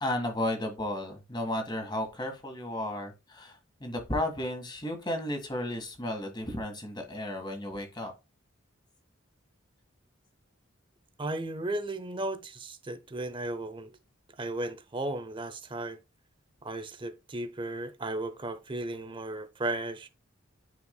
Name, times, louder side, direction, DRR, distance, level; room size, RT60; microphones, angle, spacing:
voice 1, 0.0-8.1, left 1 dB, 20° left, 1.6 m, -33 dB
voice 2, 11.2-14.0 14.4-16.0 16.6-20.1, right 2 dB, 25° right, 0.7 m, -35 dB
9.6 x 4.6 x 2.2 m
head